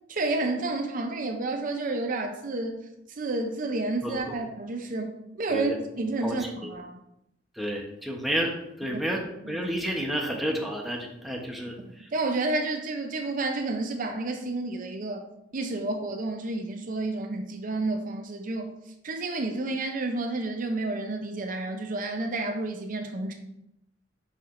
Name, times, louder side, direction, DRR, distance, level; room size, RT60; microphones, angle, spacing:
voice 1, 0.1-2.8 3.1-5.7 6.0-7.0 8.9-9.0 9.4-9.7 12.1-15.3 15.5-18.8 19.0-23.3, right 2 dB, 45° right, 4 dB, 0.5 m, -30 dB
voice 2, 4.0-4.3 5.5-5.7 6.2-6.4 6.6-6.7 7.6-8.5 8.8-9.2 9.5-11.8, equal, ahead, -1 dB, 0.9 m, -30 dB
7.1 x 5.7 x 2.5 m, 0.83 s
head